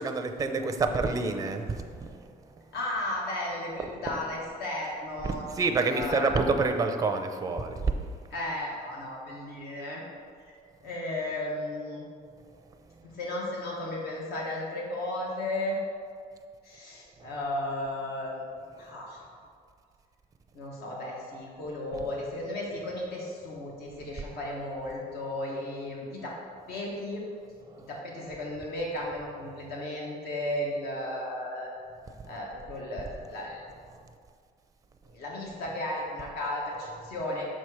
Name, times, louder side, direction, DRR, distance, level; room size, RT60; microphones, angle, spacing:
voice 1, 0.0-2.8 3.8-3.9 5.2-8.3 12.4-13.1 17.2-17.3 18.7-19.0 24.2-24.3 27.7-27.9 29.6-29.7 32.1-32.4 33.9-34.1 35.0-35.1, right 3 dB, 20° right, 6 dB, 0.5 m, -30 dB
voice 2, 2.7-5.4 5.9-6.4 8.3-10.0 10.5-10.6 10.8-12.0 13.0-15.8 16.6-18.4 18.8-19.2 20.5-26.3 26.7-27.2 27.9-31.7 32.3-33.6 35.0-37.5, left 1 dB, 70° left, -3 dB, 1.5 m, -34 dB
5.8 x 4.3 x 4.9 m, 2.1 s
cardioid pair, 110°, 17 cm